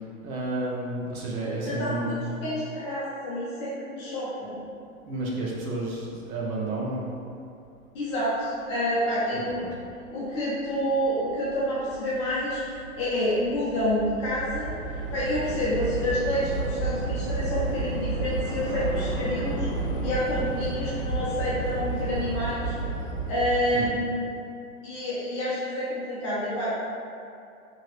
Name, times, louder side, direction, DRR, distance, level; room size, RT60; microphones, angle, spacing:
voice 1, 0.2-2.5 5.0-7.0 9.3-9.8 16.0-16.1 16.5-16.7 23.7-24.0, right 2 dB, 80° right, -4 dB, 0.9 m, -31 dB
voice 2, 1.6-2.2 2.4-4.6 7.9-9.6 10.1-14.7 15.1-19.7 20.0-22.8 23.3-24.3 24.8-26.7, equal, 20° left, -9 dB, 0.5 m, -28 dB
Train / Subway metro underground, 10.8-11.0 11.3-23.9, right 2 dB, 40° left, 0.9 m, -31 dB
2.9 x 2.8 x 3.0 m, 2.5 s
hypercardioid pair, 150°, 42 cm